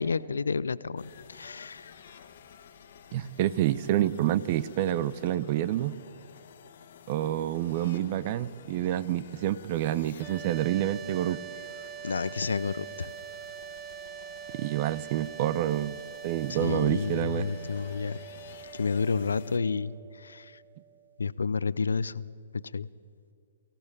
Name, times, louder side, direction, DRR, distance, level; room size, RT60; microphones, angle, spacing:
voice 1, 0.0-1.8 12.0-13.1 16.6-18.2 18.7-20.0 20.2-20.4 21.2-22.2 22.7-22.9, left 5 dB, 70° left, 19 dB, 0.6 m, -30 dB
sound 1, 1.0-19.6, left 8 dB, 50° left, 1.5 m, -52 dB
voice 2, 3.1-6.0 7.1-11.4 14.5-16.0 16.2-17.5, right 13 dB, 40° right, 17 dB, 0.7 m, -28 dB
sound 2, 10.2-21.3, right 8 dB, 15° right, 1.0 m, -44 dB
23.5 x 16.5 x 8.7 m, 2.4 s
figure-of-eight pair, 120°, 0 cm